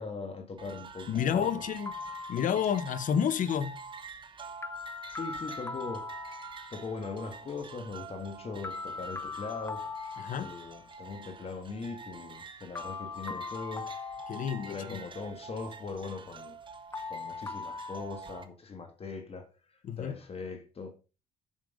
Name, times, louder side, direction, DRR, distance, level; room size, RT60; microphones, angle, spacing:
voice 1, 0.0-1.5 5.1-6.4 6.7-9.9 10.4-13.9 14.7-16.6 17.1-21.0, left 4 dB, 35° left, 1.7 m, -40 dB
sound 1, 0.6-18.4, right 5 dB, 30° right, 1.2 m, -47 dB
voice 2, 1.1-1.9 2.3-3.8 10.2-10.5 14.3-15.0 19.9-20.1, left 8 dB, 50° left, 0.8 m, -30 dB
sound 2, 1.9-3.0 4.6-6.9 8.6-11.0 12.8-15.1 16.9-18.0, left 4 dB, 15° left, 0.6 m, -40 dB
7.5 x 6.5 x 5.1 m
cardioid pair, 110°, 17 cm